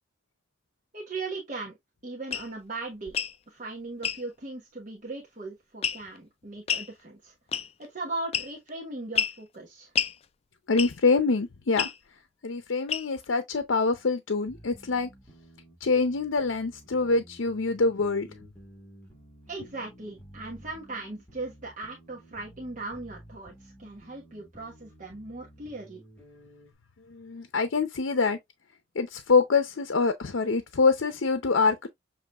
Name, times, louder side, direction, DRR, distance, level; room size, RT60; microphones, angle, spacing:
voice 1, 0.9-1.8 2.0-3.1 3.5-7.3 7.9-9.9 19.5-26.0, right 3 dB, 40° right, 1.2 m, -38 dB
sound 1, 2.3-2.5 3.1-3.4 4.0-4.2 5.8-6.2 6.7-6.9 7.5-7.9 8.3-8.7 9.2-9.4 10.0-10.2 10.8-11.1 11.8-12.0 12.9-13.2, left 8 dB, 30° left, 0.3 m, -29 dB
voice 2, 10.7-11.9 12.4-15.1 15.8-18.3 27.1-28.4 29.0-31.9, left 4 dB, 80° left, 0.6 m, -25 dB
sound 2, 14.5-26.7, equal, 5° left, 2.4 m, -52 dB
7.2 x 3.1 x 2.3 m
head